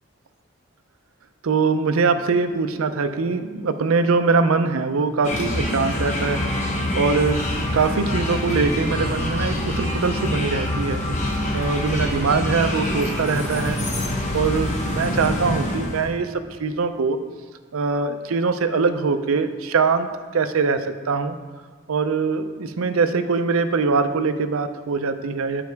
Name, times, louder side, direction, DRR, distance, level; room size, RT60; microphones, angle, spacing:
voice 1, 1.4-6.4 6.9-7.4 7.7-11.0 11.5-13.8 14.3-17.2 17.7-20.1 20.3-21.4 21.9-25.6, right 4 dB, 80° right, 9 dB, 0.5 m, -22 dB
sound 1, 5.2-16.1, left 1 dB, 35° left, 0.9 m, -25 dB
9.2 x 5.1 x 4.6 m, 1.5 s
head